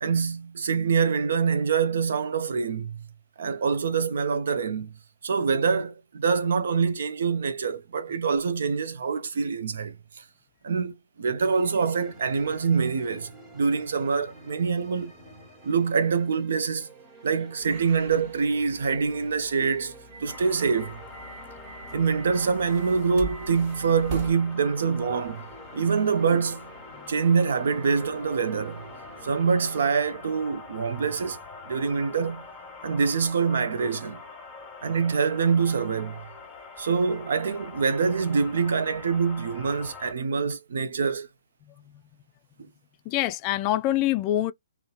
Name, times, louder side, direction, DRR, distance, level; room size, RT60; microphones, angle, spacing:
voice 1, 0.0-3.1 3.4-4.9 5.2-10.2 10.6-15.1 15.6-16.9 17.2-19.9 20.2-21.0 21.9-25.4 25.7-26.7 27.1-28.8 29.2-31.4 31.7-32.4 32.8-34.2 34.8-36.2 36.8-41.3, right 5 dB, 65° right, 0.5 m, -25 dB
sound 1, 11.4-29.8, right 2 dB, 20° right, 1.1 m, -49 dB
thirsty soda can, 17.6-24.3, right 4 dB, 40° right, 0.8 m, -42 dB
sound 2, 20.3-40.1, left 4 dB, 10° left, 1.2 m, -44 dB
voice 2, 43.1-44.5, left 14 dB, 30° left, 0.3 m, -25 dB
2.8 x 2.1 x 2.3 m
hypercardioid pair, 135°, 0 cm